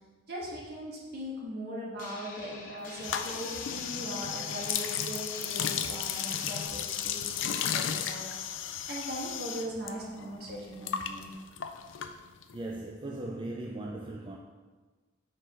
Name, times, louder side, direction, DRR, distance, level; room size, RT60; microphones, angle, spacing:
voice 1, 0.3-8.3 8.9-11.3, equal, 55° right, -5 dB, 1.7 m, -39 dB
sound 1, 2.0-6.7, left 3 dB, 45° left, 1.0 m, -47 dB
sound 2, 3.0-9.9 10.2-12.6, left 8 dB, 80° left, 0.4 m, -34 dB
voice 2, 12.5-14.4, right 2 dB, 25° right, 0 dB, 0.4 m, -38 dB
5.1 x 3.9 x 5.5 m, 1.3 s
head